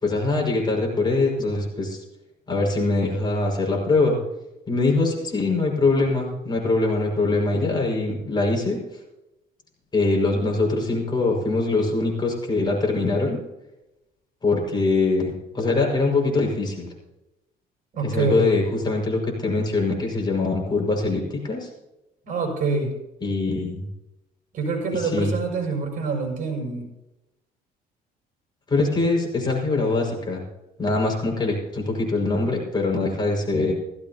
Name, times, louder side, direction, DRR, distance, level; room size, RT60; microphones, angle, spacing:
voice 1, 0.0-2.0 2.5-4.2 4.7-8.8 9.9-13.4 14.4-16.9 18.0-21.7 23.2-23.9 24.9-25.3 28.7-30.4 30.8-33.7, left 3 dB, 25° left, -1 dB, 5.5 m, -23 dB
voice 2, 17.9-18.5 22.2-22.9 24.5-26.9, right 4 dB, 50° right, 1 dB, 6.3 m, -26 dB
17.0 x 15.5 x 2.9 m, 0.93 s
cardioid pair, 110°, 17 cm